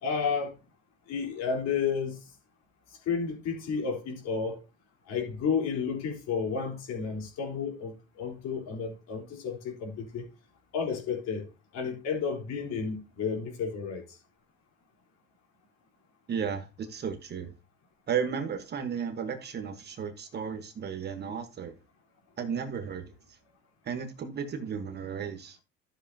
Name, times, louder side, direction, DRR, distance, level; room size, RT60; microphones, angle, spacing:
voice 1, 0.0-0.5 1.1-2.2 3.0-4.6 5.1-10.2 10.7-11.5 11.7-14.0, left 6 dB, 50° left, 3.9 m, -31 dB
voice 2, 16.3-17.5 18.1-21.7 22.4-23.0 23.9-25.6, right 7 dB, 30° right, 1.2 m, -34 dB
13.0 x 7.5 x 2.8 m
cardioid pair, 150°, 33 cm